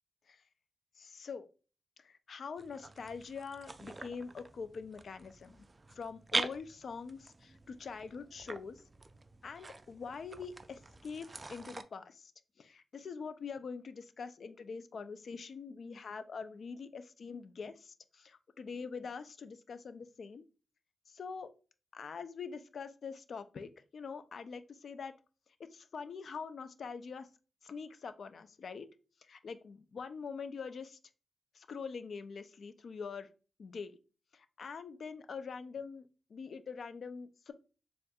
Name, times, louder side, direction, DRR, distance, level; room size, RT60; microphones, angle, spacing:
voice 1, 1.0-1.5 2.0-5.6 5.9-8.8 9.4-12.3 12.6-20.5 21.1-21.5 21.9-25.1 25.6-27.3 27.6-28.9 29.3-31.0 31.5-33.3 33.6-33.9 34.3-37.5, left 5 dB, 70° left, 11 dB, 0.4 m, -44 dB
sound 1, 2.6-11.8, right 2 dB, 30° right, 0.3 m, -44 dB
4.2 x 2.5 x 2.3 m, 0.34 s
cardioid pair, 70°, 0 cm